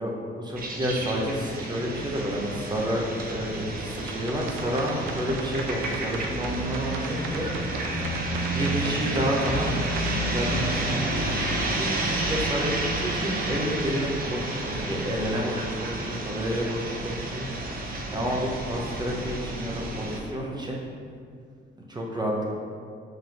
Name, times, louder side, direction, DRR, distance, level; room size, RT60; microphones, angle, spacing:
voice 1, 0.0-3.0 3.3-7.5 8.5-9.9 10.3-12.7 13.0-17.5 18.1-20.8 21.9-22.5, equal, 20° right, -2 dB, 1.1 m, -30 dB
sound 1, 0.6-20.2, right 2 dB, 45° right, 1.0 m, -30 dB
sound 2, 4.0-10.1, right 5 dB, 85° right, 0.6 m, -38 dB
5.4 x 3.7 x 5.9 m, 2.2 s
cardioid pair, 90°, 20 cm